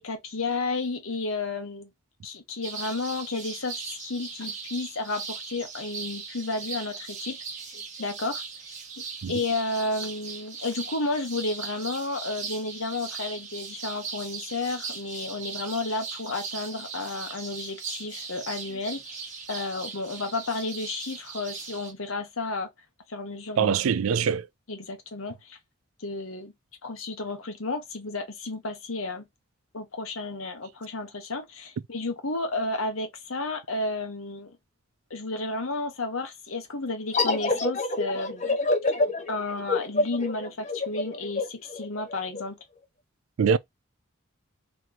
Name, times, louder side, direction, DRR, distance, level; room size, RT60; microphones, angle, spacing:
voice 1, 0.0-1.9 2.2-8.4 9.0-22.7 23.1-23.7 24.7-25.6 26.0-26.5 26.8-29.2 29.7-34.5 35.1-38.6 39.3-42.6, left 3 dB, 85° left, 1.1 m, -32 dB
sound 1, 2.6-21.9, right 5 dB, 35° right, 0.9 m, -39 dB
voice 2, 23.6-24.5 43.4-43.6, right 7 dB, 85° right, 0.4 m, -23 dB
sound 2, 37.1-42.4, left 2 dB, 35° left, 0.8 m, -27 dB
3.0 x 2.9 x 3.7 m
head